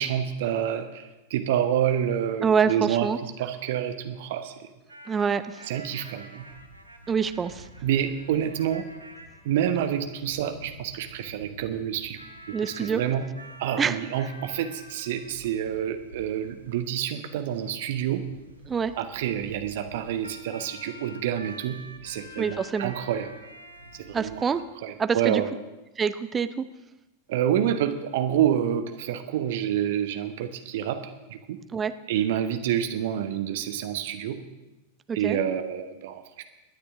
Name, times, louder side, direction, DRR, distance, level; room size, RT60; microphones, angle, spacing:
voice 1, 0.0-4.5 5.7-6.5 7.8-8.9 9.4-12.2 12.5-13.3 13.6-18.2 19.0-23.3 23.9-24.4 24.8-25.5 27.3-31.0 31.3-31.6 32.1-34.4 35.1-36.4, right 10 dB, 55° right, 9 dB, 1.1 m, -28 dB
voice 2, 2.4-3.2 5.1-5.7 7.1-7.7 12.5-13.0 13.8-14.0 18.7-18.9 22.4-22.9 24.1-24.6 25.0-25.4 26.0-26.6 31.7-31.9 35.1-35.4, right 6 dB, 20° right, 12 dB, 0.6 m, -26 dB
sound 1, 4.9-24.6, right 1 dB, 85° right, 1.3 m, -48 dB
22.0 x 10.0 x 3.6 m, 1.0 s
figure-of-eight pair, 90°, 0 cm